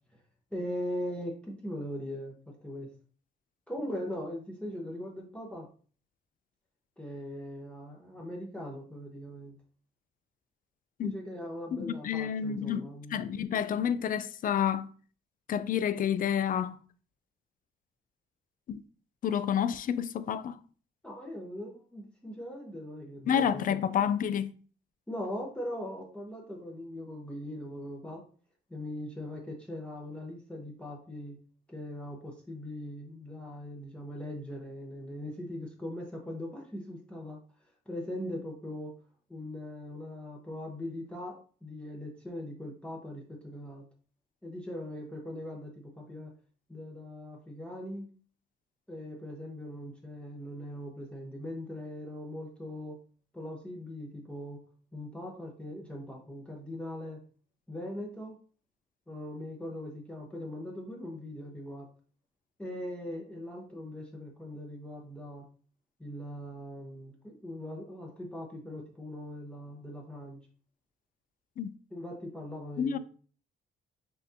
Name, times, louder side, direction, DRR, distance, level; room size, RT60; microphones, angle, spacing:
voice 1, 0.5-2.9 3.7-5.7 7.0-9.6 11.0-13.5 21.0-23.8 25.1-28.2 28.7-31.4 31.7-37.4 37.9-39.0 39.3-43.8 44.4-46.3 46.7-48.1 48.9-53.0 53.3-54.6 54.9-57.2 57.7-58.4 59.1-61.9 62.6-65.5 66.0-70.4 71.9-73.0, left 1 dB, 5° left, 0.9 m, -40 dB
voice 2, 11.8-14.9 15.5-16.8 18.7-18.8 19.2-20.6 23.3-24.5 71.6-71.7 72.8-73.0, left 8 dB, 45° left, 0.4 m, -29 dB
5.6 x 2.6 x 2.7 m
cardioid pair, 90°, 20 cm